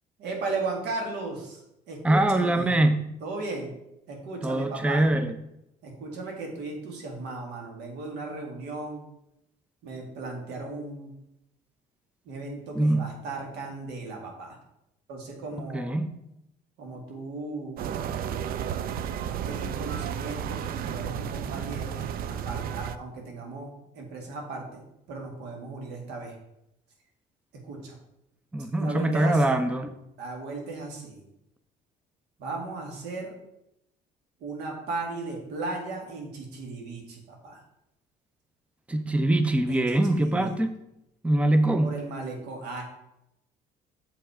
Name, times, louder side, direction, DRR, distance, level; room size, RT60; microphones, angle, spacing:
voice 1, 0.2-1.6 1.9-2.7 3.2-3.7 4.1-5.0 5.8-9.0 9.8-11.1 12.2-14.6 15.1-16.0 16.8-17.9 19.4-24.8 25.1-26.4 27.6-28.0 28.8-29.6 30.2-31.2 32.4-33.4 34.4-37.6 39.7-40.6 41.8-42.8, right 3 dB, 85° right, 1 dB, 2.3 m, -36 dB
voice 2, 2.0-3.0 4.4-5.3 12.7-13.1 15.6-16.1 28.5-29.9 38.9-40.7 41.2-41.9, right 1 dB, 5° right, 9 dB, 0.6 m, -23 dB
sound 1, 17.8-23.0, right 8 dB, 60° right, 0.5 m, -32 dB
7.1 x 5.6 x 5.0 m, 0.83 s
cardioid pair, 110°, 17 cm